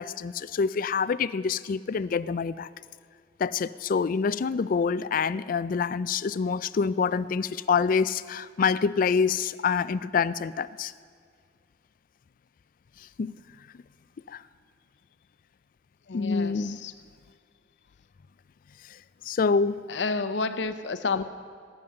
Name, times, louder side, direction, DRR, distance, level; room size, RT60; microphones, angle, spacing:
voice 1, 0.0-2.7 3.4-10.9 13.2-13.3 14.3-14.4 16.1-16.8 18.9-19.0 19.2-19.9, left 5 dB, 50° left, 17 dB, 0.4 m, -26 dB
voice 2, 16.1-16.9 19.9-21.2, left 4 dB, 75° left, 12 dB, 0.7 m, -30 dB
18.5 x 9.3 x 6.4 m, 2.1 s
head